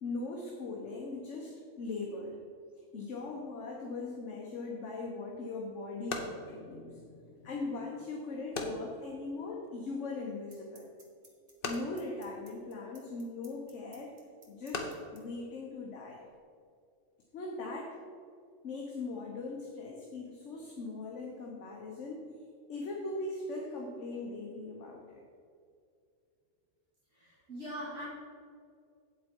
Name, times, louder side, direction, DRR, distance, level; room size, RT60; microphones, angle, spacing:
voice 1, 0.0-2.4 2.9-10.9 11.6-14.1 14.5-16.2 17.3-18.0 18.6-22.3 22.7-25.2, left 3 dB, 70° left, -1 dB, 1.3 m, -40 dB
sound 1, 5.0-16.4, left 3 dB, 50° left, 1.0 m, -45 dB
sound 2, 9.4-9.5 10.5-15.2, right 3 dB, 40° right, 1.4 m, -57 dB
voice 2, 27.1-28.0, equal, 75° right, -12 dB, 3.1 m, -42 dB
8.1 x 8.1 x 4.5 m, 2.3 s
omnidirectional pair, 1.3 m